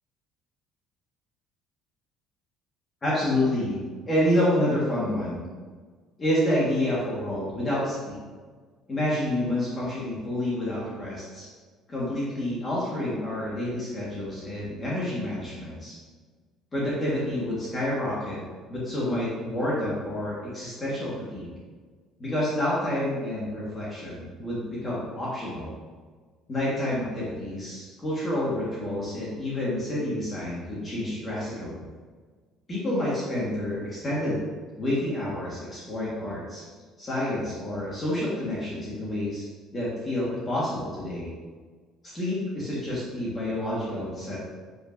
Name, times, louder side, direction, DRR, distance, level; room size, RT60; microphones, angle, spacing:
voice 1, 3.0-5.5 6.2-8.2 8.9-11.5 11.9-16.0 16.7-18.4 18.7-21.5 22.2-25.7 26.5-31.8 32.7-34.4 34.8-36.6 37.0-39.4 39.7-41.3 42.0-44.4, left 1 dB, 20° left, -7 dB, 1.5 m, -28 dB
10.0 x 5.4 x 2.6 m, 1.5 s
cardioid pair, 175°, 0 cm